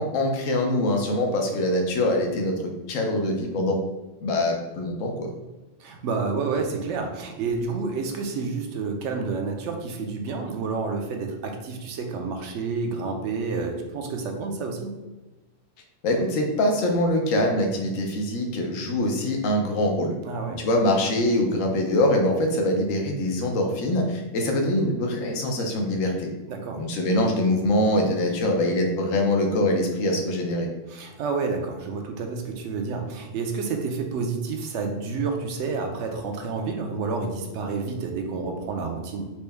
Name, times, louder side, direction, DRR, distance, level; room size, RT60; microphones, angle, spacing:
voice 1, 0.0-2.6 2.9-3.8 4.2-5.3 16.0-20.1 20.6-26.3 26.8-30.7, left 1 dB, 85° left, 2 dB, 1.1 m, -23 dB
voice 2, 5.8-15.0 20.2-20.6 26.5-26.8 30.9-39.2, right 4 dB, 70° right, 3 dB, 0.9 m, -29 dB
4.3 x 2.2 x 3.3 m, 1.1 s
omnidirectional pair, 1.3 m